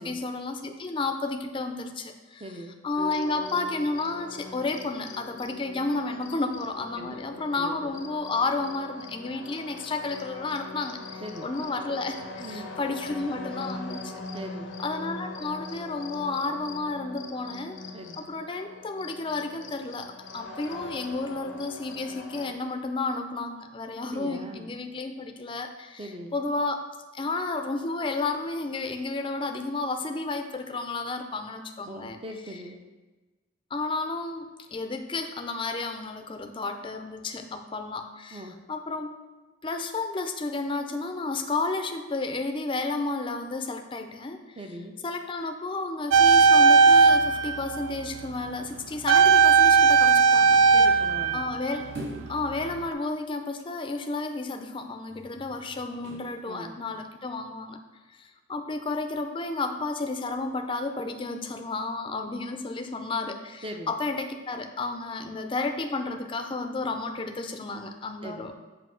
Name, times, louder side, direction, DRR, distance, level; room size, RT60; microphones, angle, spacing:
voice 1, 0.0-2.4 2.8-14.1 14.8-17.8 18.2-26.8 27.1-32.2 33.7-38.4 38.7-39.1 39.6-44.4 45.0-50.6 51.3-51.9 52.3-57.8 58.2-68.5, left 3 dB, 25° left, 6 dB, 0.4 m, -32 dB
voice 2, 2.4-2.8 7.0-7.2 7.5-7.9 11.2-11.5 12.4-12.7 14.3-14.7 17.9-18.3 24.1-24.7 26.0-26.3 31.9-32.8 38.3-38.6 44.6-45.0 50.7-51.4 56.4-56.8 63.6-63.9 68.2-68.5, right 1 dB, 30° right, 5 dB, 0.6 m, -40 dB
sound 1, 3.0-22.5, left 3 dB, 90° left, 0.7 m, -41 dB
sound 2, 46.1-48.1 49.1-52.2 52.5-52.6, right 5 dB, 85° right, 0.3 m, -18 dB
sound 3, 51.9-52.4 55.0-56.3 56.9-57.0, right 1 dB, 70° right, 2.2 m, -41 dB
7.5 x 2.7 x 5.7 m, 1.2 s
head